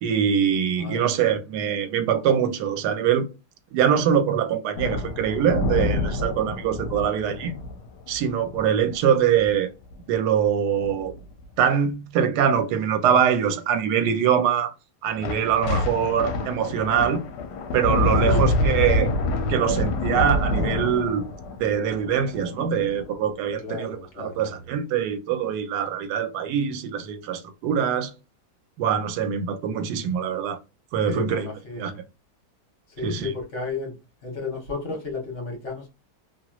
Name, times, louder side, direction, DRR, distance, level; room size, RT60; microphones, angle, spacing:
voice 1, 0.0-3.3 3.7-7.5 8.1-9.7 10.1-11.1 11.6-14.7 15.0-17.2 17.7-19.1 19.5-21.2 21.6-28.1 28.8-30.6 30.9-31.5 31.7-31.9 33.0-33.3, right 8 dB, 75° right, 1.1 m, -23 dB
voice 2, 0.8-1.3 18.2-18.5 23.6-24.4 31.1-32.0 33.0-33.9 34.2-35.9, left 3 dB, 45° left, 1.4 m, -33 dB
sound 1, 4.7-9.0 9.3-9.5 9.9-10.1 10.8-11.2 15.2-23.2, left 2 dB, 75° left, 1.2 m, -27 dB
2.9 x 2.9 x 2.3 m
omnidirectional pair, 1.8 m